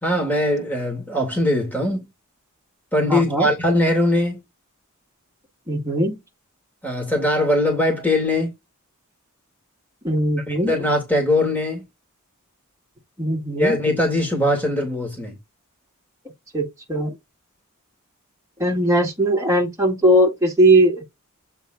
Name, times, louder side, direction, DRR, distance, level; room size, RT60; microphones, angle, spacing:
voice 1, 0.0-2.1 2.9-4.4 6.8-8.5 10.5-11.8 13.6-15.3, left 1 dB, 10° left, 2.4 m, -21 dB
voice 2, 3.1-3.5 5.7-6.2 10.0-10.7 13.2-13.8 16.5-17.1 18.6-21.0, right 1 dB, 15° right, 1.9 m, -19 dB
8.3 x 3.5 x 3.9 m
head